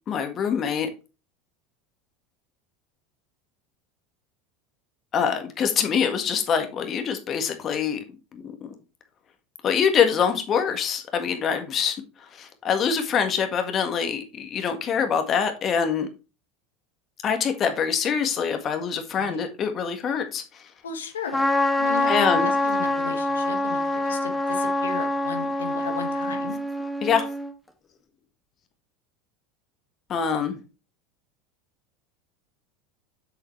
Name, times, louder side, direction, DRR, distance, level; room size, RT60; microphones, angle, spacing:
voice 1, 0.1-0.9 5.1-8.0 8.3-8.7 9.6-11.9 12.2-16.1 17.2-20.7 22.1-22.5 27.0-27.3 30.1-30.6, left 7 dB, 40° left, 1.7 m, -25 dB
voice 2, 20.8-26.6, left 7 dB, 80° left, 1.7 m, -35 dB
Trumpet, 21.3-27.5, left 1 dB, 5° left, 1.7 m, -25 dB
7.7 x 7.7 x 3.2 m
figure-of-eight pair, 80°, 0 cm